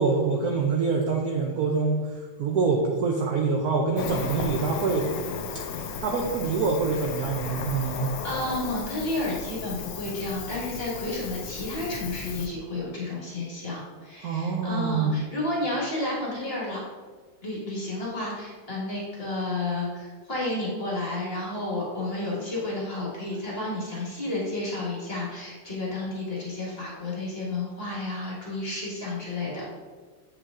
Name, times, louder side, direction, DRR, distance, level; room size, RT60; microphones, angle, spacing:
voice 1, 0.0-2.0 2.4-5.1 5.7-8.1 14.2-15.2, right 4 dB, 80° right, 1 dB, 0.8 m, -25 dB
Cricket, 4.0-12.5, left 5 dB, 90° left, 1.6 m, -35 dB
voice 2, 8.2-16.8 17.4-29.6, left 2 dB, 30° left, -5 dB, 1.5 m, -31 dB
7.8 x 4.8 x 3.7 m, 1.5 s
omnidirectional pair, 2.4 m